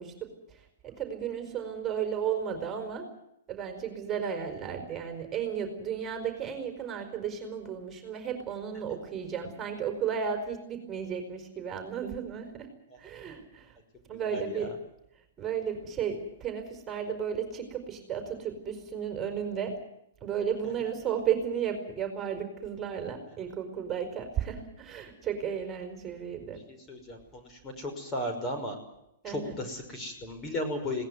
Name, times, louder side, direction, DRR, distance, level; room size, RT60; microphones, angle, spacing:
voice 1, 0.0-3.1 3.5-12.7 13.0-13.8 14.1-14.7 15.4-19.8 20.2-26.6 29.2-29.6, right 8 dB, 20° right, 5 dB, 5.0 m, -34 dB
voice 2, 14.1-14.7 26.9-28.8 29.3-31.1, left 1 dB, 25° left, 5 dB, 5.6 m, -35 dB
21.0 x 18.0 x 9.6 m, 0.81 s
hypercardioid pair, 115°, 0 cm